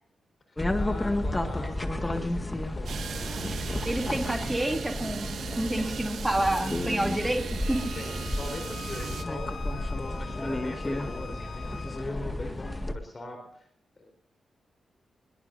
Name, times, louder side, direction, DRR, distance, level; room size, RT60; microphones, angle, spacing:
voice 1, 0.5-3.4 8.0-13.7 14.0-14.1, left 2 dB, 35° left, 5 dB, 4.1 m, -42 dB
sound 1, 0.6-12.9, left 1 dB, 15° left, 1.9 m, -32 dB
sound 2, 2.8-9.2, right 6 dB, 80° right, 1.8 m, -37 dB
voice 2, 3.8-7.9, right 1 dB, 10° right, 3 dB, 2.9 m, -29 dB
Bowed string instrument, 7.6-12.1, left 6 dB, 60° left, 2.1 m, -45 dB
24.5 x 22.0 x 2.7 m, 0.70 s
wide cardioid pair, 115°, 0 cm